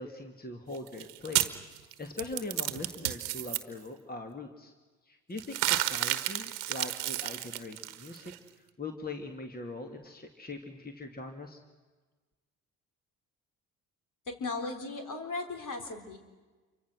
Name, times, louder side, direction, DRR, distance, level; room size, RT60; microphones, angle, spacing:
voice 1, 0.0-1.6 2.0-4.7 5.1-8.3 8.8-11.6, left 2 dB, 25° left, 4 dB, 2.4 m, -41 dB
sound 1, 0.7-3.6 5.4-8.4, right 17 dB, 85° right, 1.2 m, -31 dB
voice 2, 14.3-16.2, left 3 dB, 55° left, 4 dB, 4.0 m, -37 dB
28.0 x 24.5 x 6.3 m, 1.3 s
hypercardioid pair, 55°, 38 cm